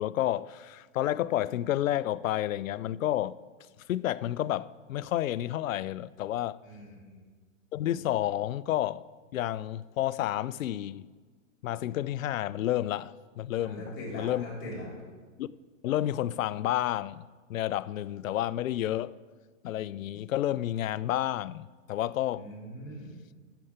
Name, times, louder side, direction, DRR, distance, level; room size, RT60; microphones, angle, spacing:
voice 1, 0.0-3.4 3.9-6.6 7.7-9.0 9.3-11.1 11.6-13.8 14.1-14.5 15.4-15.5 15.8-17.2 17.5-19.2 19.6-22.5, left 13 dB, 85° left, 0.5 m, -30 dB
voice 2, 6.6-7.2 13.6-14.9 22.3-23.1, left 1 dB, 30° left, 3.6 m, -41 dB
9.1 x 6.8 x 8.0 m
hypercardioid pair, 145°, 39 cm